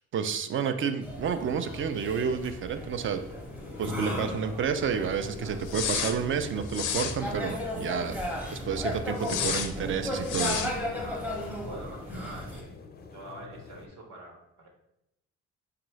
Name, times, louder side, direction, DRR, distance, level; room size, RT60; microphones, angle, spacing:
voice 1, 0.1-3.2 3.8-8.2 8.5-10.7, right 7 dB, 45° right, 9 dB, 0.4 m, -30 dB
sound 1, 1.0-12.6, left 1 dB, 5° right, 0.7 m, -36 dB
sound 2, 2.7-13.9, left 5 dB, 35° left, 0.4 m, -48 dB
sound 3, 5.7-6.2 6.7-7.2 9.2-9.7 10.2-10.7, left 8 dB, 90° left, 0.5 m, -30 dB
voice 2, 10.9-11.3 11.6-12.8 13.1-14.7, right 1 dB, 70° right, 0 dB, 1.0 m, -45 dB
4.6 x 2.5 x 3.1 m, 0.83 s
cardioid pair, 90°, 30 cm